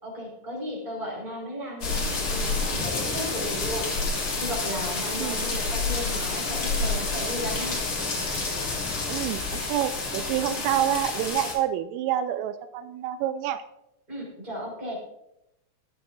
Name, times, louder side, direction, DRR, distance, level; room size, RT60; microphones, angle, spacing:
voice 1, 0.0-3.9 4.4-7.8 10.4-10.6 14.1-15.0, equal, 10° right, -4 dB, 4.5 m, -35 dB
sound 1, 1.8-11.5, left 3 dB, 35° left, 3.2 m, -29 dB
voice 2, 9.1-13.6, right 11 dB, 85° right, 11 dB, 3.2 m, -28 dB
22.5 x 8.0 x 2.7 m, 0.83 s
omnidirectional pair, 5.8 m